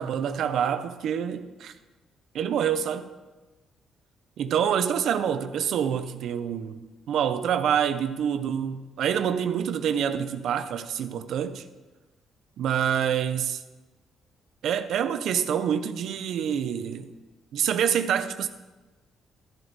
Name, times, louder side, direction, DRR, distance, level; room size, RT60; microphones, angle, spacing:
voice 1, 0.0-1.7 2.3-3.1 4.4-11.6 12.6-13.6 14.6-17.1 17.5-18.5, right 8 dB, 75° right, 0.6 m, -26 dB
13.5 x 7.8 x 4.0 m
cardioid pair, 90°, 0 cm